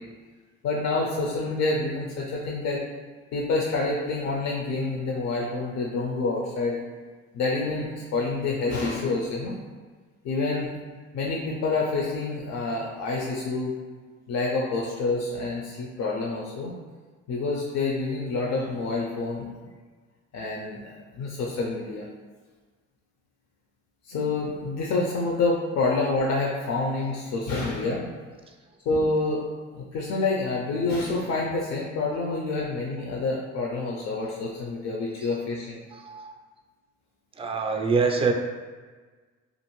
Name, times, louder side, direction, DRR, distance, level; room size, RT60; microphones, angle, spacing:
voice 1, 0.6-2.8 3.3-6.8 7.3-9.6 10.2-10.7 11.1-13.7 14.3-16.7 17.3-19.5 20.3-22.1 24.1-28.1 28.9-29.4 29.7-35.8, left 3 dB, 60° left, -2 dB, 0.5 m, -27 dB
voice 2, 35.9-36.4 37.3-38.3, right 4 dB, 20° right, 3 dB, 0.3 m, -26 dB
2.5 x 2.5 x 3.0 m, 1.4 s
cardioid pair, 90°, 30 cm